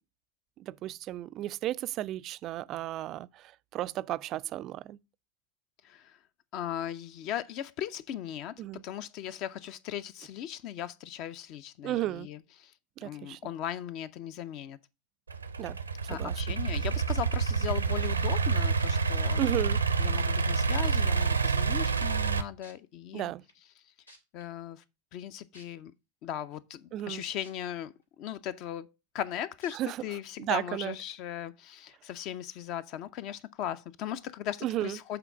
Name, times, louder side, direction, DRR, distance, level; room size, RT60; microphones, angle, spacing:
voice 1, 0.6-5.0 8.6-8.8 11.8-12.3 13.0-13.4 15.6-15.8 16.0-16.6 19.4-19.8 23.1-23.4 26.9-27.2 29.7-30.0 30.4-30.9 34.6-35.0, right 14 dB, 35° right, 0.3 m, -34 dB
voice 2, 5.8-6.2 6.5-8.5 8.8-12.7 13.0-14.8 16.1-19.4 20.0-23.3 24.3-24.8 25.1-25.9 26.2-28.9 29.1-35.2, left 10 dB, 40° left, 0.5 m, -38 dB
Idling / Accelerating revving vroom, 15.3-22.4, right 5 dB, 75° right, 0.6 m, -28 dB
sound 1, 21.4-21.7 22.6-22.7 23.5-23.6 24.1-24.4 25.5-25.6 27.4-27.5 28.0-28.1 29.6-29.7 30.5-30.6, left 1 dB, 85° left, 1.8 m, -53 dB
7.9 x 3.8 x 5.9 m
figure-of-eight pair, 90°, 0 cm